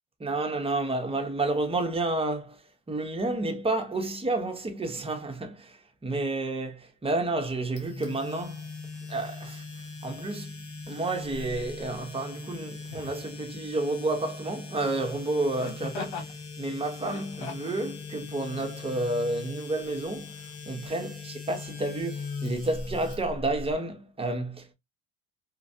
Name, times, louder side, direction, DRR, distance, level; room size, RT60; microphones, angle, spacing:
voice 1, 0.2-2.6 2.9-8.6 9.1-9.6 10.0-10.5 10.9-24.7, right 2 dB, 15° right, 0.9 m, -30 dB
sound 1, 7.8-23.7, left 4 dB, 60° left, 1.3 m, -40 dB
Laughter, 11.3-11.5 12.8-13.2 15.6-16.3 17.0-17.8 18.5-18.7, left 4 dB, 85° left, 1.3 m, -40 dB
3.2 x 2.4 x 2.7 m
supercardioid pair, 80°, 34 cm